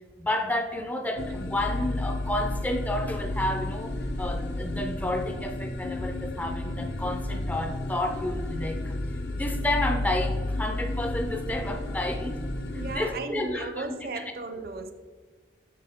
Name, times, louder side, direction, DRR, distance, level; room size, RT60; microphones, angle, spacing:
voice 1, 0.2-9.0 9.3-12.4 12.9-14.3, left 1 dB, 10° left, 5 dB, 0.4 m, -31 dB
sound 1, 1.2-13.0, left 1 dB, 65° left, 0.6 m, -32 dB
voice 2, 12.7-14.9, right 3 dB, 55° right, 9 dB, 0.5 m, -36 dB
7.4 x 6.2 x 3.5 m, 1.5 s
head